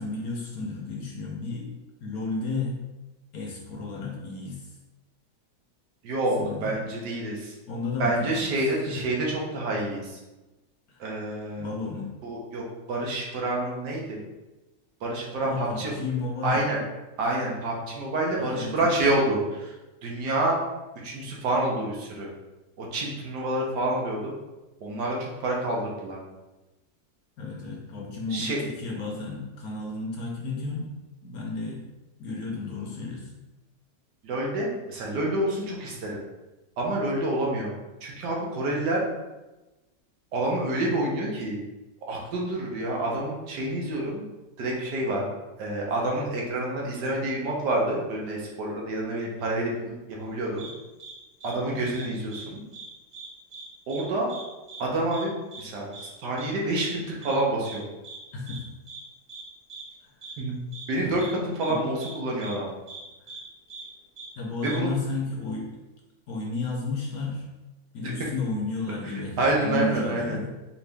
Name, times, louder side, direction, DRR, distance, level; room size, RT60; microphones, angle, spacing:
voice 1, 0.0-1.7 2.0-2.8 3.3-4.7 6.4-6.8 7.7-9.1 10.9-11.1 11.6-12.1 15.4-16.7 18.4-19.0 27.4-30.9 31.2-31.8 32.2-33.4 51.7-52.0 58.3-58.7 60.0-60.1 61.0-61.3 61.7-61.8 64.4-65.7 66.3-67.4 67.9-70.5, left 3 dB, 65° left, -1 dB, 1.1 m, -33 dB
voice 2, 6.0-7.5 8.0-10.2 11.0-11.7 12.2-12.6 12.9-14.2 15.0-15.9 16.4-16.8 17.2-19.7 20.0-20.6 21.0-22.3 22.8-24.3 24.8-26.2 28.3-28.6 34.2-36.2 36.8-37.7 38.0-39.0 40.3-41.6 42.1-44.2 44.6-45.3 45.6-50.7 51.4-52.6 53.9-54.3 54.8-55.9 56.2-57.9 60.4-60.5 60.9-62.7 64.6-64.9 69.4-70.4, right 1 dB, 70° right, -2 dB, 1.5 m, -28 dB
sound 1, 50.6-50.7 51.0-51.1 51.4-51.5 51.9-52.4 52.7-52.9 53.1-53.6 53.9-54.0 54.3-54.4 54.7-54.8 55.1-55.2 55.5-55.6 55.9-56.1 56.4-56.5 56.8-56.9 57.2-57.3 57.6-57.8 58.0-58.2 58.5-58.6 58.9-59.0 59.3-59.4 59.7-59.8 60.2-60.3 60.7-60.8 61.2-61.3 61.6-61.7 62.0-62.1 62.4-62.5 62.9-63.0 63.3-63.4 63.7-63.8 64.2-64.3 64.6-64.8, right 4 dB, 40° right, 0.6 m, -41 dB
4.9 x 2.9 x 3.4 m, 1.1 s
omnidirectional pair, 1.9 m